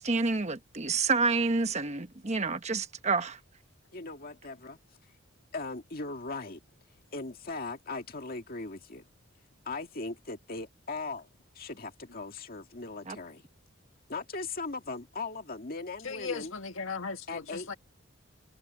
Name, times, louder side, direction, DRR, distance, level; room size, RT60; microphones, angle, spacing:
voice 1, 0.0-3.4 13.1-13.2, right 4 dB, 35° right, 1.1 m, -28 dB
voice 2, 3.9-4.8 5.5-6.6 7.1-9.1 9.7-11.3 11.5-13.4 14.1-16.5 17.3-17.7, left 3 dB, 45° left, 2.0 m, -38 dB
voice 3, 16.0-17.7, left 5 dB, 70° left, 1.8 m, -37 dB
head